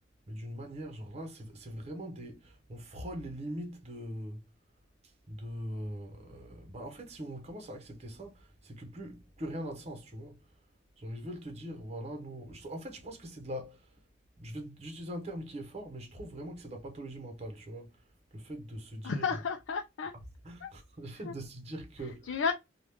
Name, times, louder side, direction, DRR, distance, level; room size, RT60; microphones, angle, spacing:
voice 1, 0.3-4.4 5.3-10.4 11.0-13.9 14.4-18.0 18.3-19.2 20.4-22.4, right 1 dB, 35° right, 0.9 m, -42 dB
voice 2, 19.0-20.1 20.6-20.7 21.2-21.4 22.0-22.5, left 5 dB, 85° left, 0.4 m, -33 dB
3.0 x 2.4 x 3.3 m
head